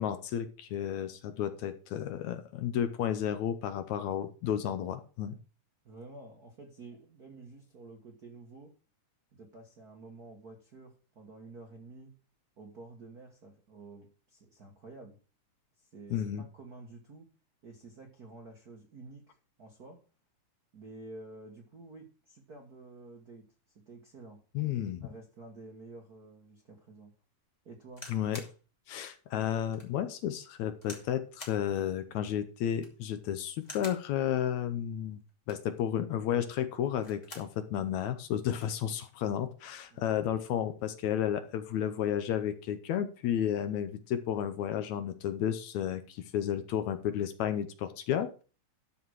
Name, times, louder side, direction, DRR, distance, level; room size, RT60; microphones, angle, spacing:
voice 1, 0.0-5.4 16.1-16.4 24.6-25.1 28.1-28.4 28.9-35.2 35.5-48.4, left 10 dB, 75° left, 11 dB, 1.9 m, -32 dB
voice 2, 5.8-8.7 9.3-12.2 12.6-15.2 15.8-17.3 17.6-20.0 20.7-23.5 23.9-24.7 25.0-27.1 27.6-28.1 39.9-40.0, right 3 dB, 50° right, 2 dB, 1.1 m, -50 dB
sound 1, 27.9-28.6 29.1-29.2 29.7-29.9 30.8-31.1 31.4-31.6 32.7-33.0 33.6-34.1 35.3-35.7 36.8-37.5 38.0-38.1 38.3-38.8 39.6-39.9, left 1 dB, 15° left, 2.0 m, -47 dB
12.5 x 4.9 x 6.3 m, 0.36 s
omnidirectional pair, 3.7 m